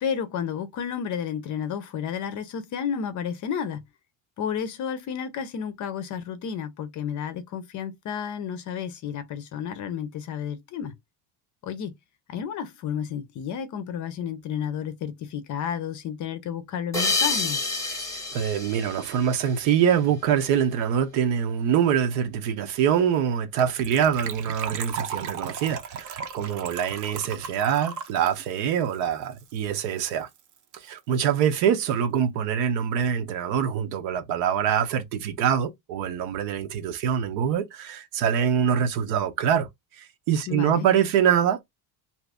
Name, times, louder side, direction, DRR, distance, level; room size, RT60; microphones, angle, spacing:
voice 1, 0.0-3.8 4.4-11.0 11.6-11.9 12.3-17.6 40.5-40.9, left 8 dB, 40° left, 0.5 m, -31 dB
sound 1, 16.9-20.0, left 3 dB, 5° left, 1.0 m, -29 dB
voice 2, 18.3-30.3 30.7-39.7 40.0-41.6, right 8 dB, 75° right, 0.9 m, -24 dB
Gurgling / Trickle dribble / Fill (with liquid), 23.6-29.8 30.1-30.2 30.3-30.6 30.9-31.0, right 7 dB, 40° right, 0.6 m, -36 dB
2.8 x 2.5 x 3.4 m
cardioid pair, 130°, 49 cm